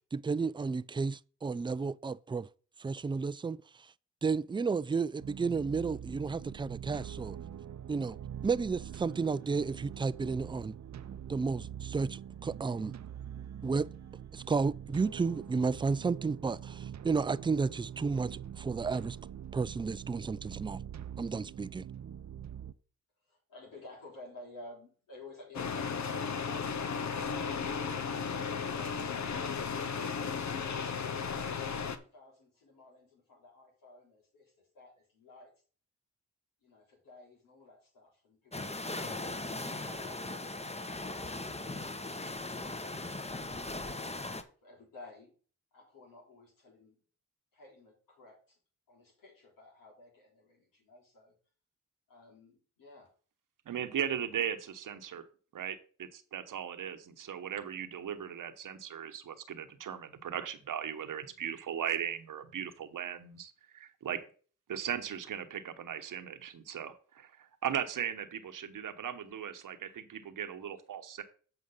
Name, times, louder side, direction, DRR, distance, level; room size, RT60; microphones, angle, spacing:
voice 1, 0.1-2.5 2.8-3.6 4.2-7.4 7.9-8.2 8.4-10.7 11.3-12.9 13.6-13.9 14.3-19.2 19.5-20.8 21.2-21.8, right 4 dB, 15° right, 0.4 m, -32 dB
sound 1, 5.2-22.7, right 9 dB, 55° right, 0.7 m, -44 dB
voice 2, 23.3-30.7 31.8-35.5 36.6-39.4 44.6-45.3 45.7-47.0 47.5-48.6 48.9-51.3 52.1-53.1, left 2 dB, 85° left, 3.8 m, -54 dB
sound 2, 25.5-32.0, left 6 dB, 60° left, 0.9 m, -35 dB
sound 3, 38.5-44.4, left 2 dB, 20° left, 1.1 m, -39 dB
voice 3, 53.7-55.2 55.5-64.2 64.7-71.2, right 8 dB, 75° right, 1.1 m, -38 dB
7.9 x 5.0 x 5.6 m
cardioid pair, 50°, 33 cm